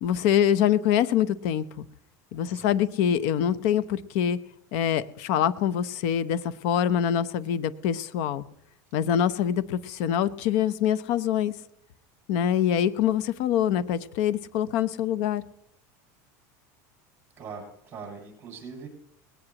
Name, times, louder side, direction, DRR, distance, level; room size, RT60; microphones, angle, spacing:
voice 1, 0.0-1.9 2.3-4.4 4.7-8.4 8.9-11.5 12.3-15.4, left 9 dB, 65° left, 16 dB, 0.8 m, -25 dB
voice 2, 2.5-2.8 17.4-18.9, right 5 dB, 25° right, 0 dB, 7.7 m, -41 dB
20.0 x 17.5 x 3.0 m, 0.76 s
supercardioid pair, 150°, 9 cm